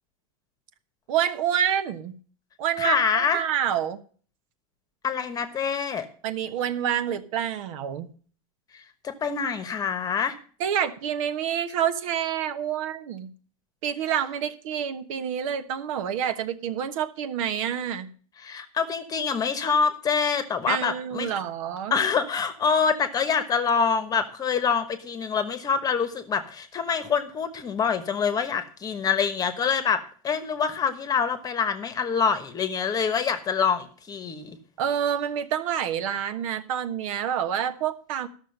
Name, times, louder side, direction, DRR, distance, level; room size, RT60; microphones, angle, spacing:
voice 1, 1.1-2.1 2.6-4.0 6.2-8.1 10.6-13.3 13.8-18.1 20.7-21.9 34.8-38.3, right 9 dB, 65° right, 10 dB, 1.3 m, -27 dB
voice 2, 2.8-3.4 5.0-6.1 9.0-10.3 18.4-21.3 21.9-34.6, left 6 dB, 20° left, 10 dB, 1.2 m, -25 dB
12.5 x 6.5 x 6.5 m, 0.43 s
supercardioid pair, 140°, 18 cm